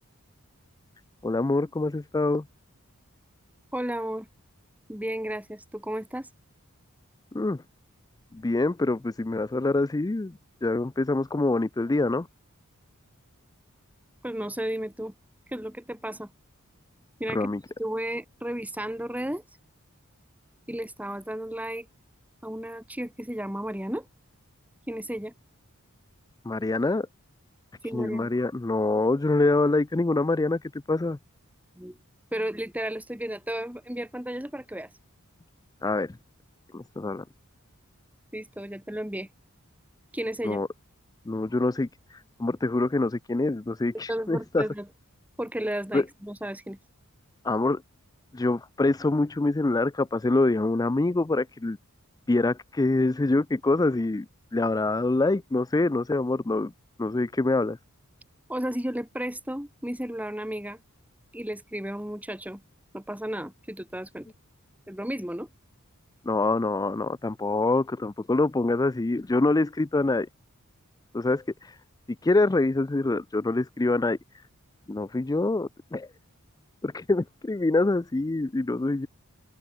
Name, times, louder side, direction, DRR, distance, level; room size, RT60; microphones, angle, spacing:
voice 1, 1.2-2.4 7.3-7.6 8.3-12.3 17.3-17.6 26.5-27.1 27.9-31.2 35.8-36.2 36.7-37.2 40.4-40.7 41.3-44.7 45.9-46.0 47.4-47.8 48.3-51.8 52.3-54.3 54.5-56.7 57.0-57.8 66.2-70.3 71.1-71.8 72.2-74.2 74.9-76.1 76.8-79.1, left 2 dB, 15° left, 0.4 m, -25 dB
voice 2, 3.7-4.3 4.9-6.3 14.2-15.1 15.5-16.3 17.2-17.4 17.8-19.4 20.7-21.9 22.4-24.1 24.9-25.3 27.8-28.3 31.8-32.0 32.3-34.9 38.3-39.3 40.1-40.6 44.1-44.9 45.4-46.8 58.5-60.8 61.3-62.6 62.9-64.3 64.9-65.5, right 1 dB, 5° right, 3.6 m, -33 dB
open air
head